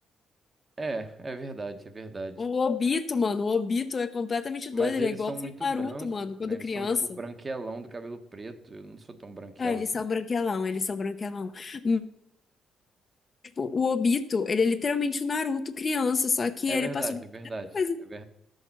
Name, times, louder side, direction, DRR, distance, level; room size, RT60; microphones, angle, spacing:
voice 1, 0.8-2.5 4.7-9.8 16.7-18.2, right 3 dB, 30° right, 8 dB, 1.1 m, -38 dB
voice 2, 2.4-7.2 9.6-12.0 13.6-17.2 17.7-18.0, left 4 dB, 40° left, 9 dB, 0.9 m, -28 dB
12.5 x 6.5 x 6.0 m, 0.78 s
cardioid pair, 90°, 0 cm